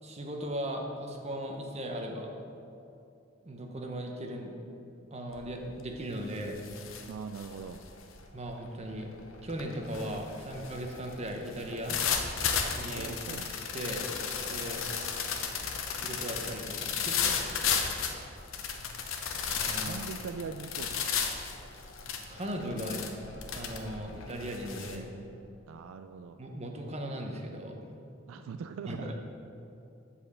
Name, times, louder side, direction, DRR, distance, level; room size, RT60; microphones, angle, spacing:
voice 1, 0.0-2.3 3.4-4.5 5.1-6.6 8.3-9.1 9.4-12.0 12.7-13.1 13.7-14.1 14.4-14.8 15.6-17.4 19.5-20.0 22.3-23.0 23.5-25.1 26.4-27.7 28.4-28.5 28.9-29.1, right 1 dB, 35° right, 2 dB, 0.9 m, -38 dB
sound 1, 5.3-5.7 6.0-25.0, left 6 dB, 80° left, 0.7 m, -34 dB
voice 2, 7.1-7.8 12.9-13.5 19.8-21.1 25.7-26.4 28.3-29.1, right 5 dB, 80° right, 9 dB, 0.3 m, -41 dB
7.7 x 4.3 x 7.0 m, 2.7 s
head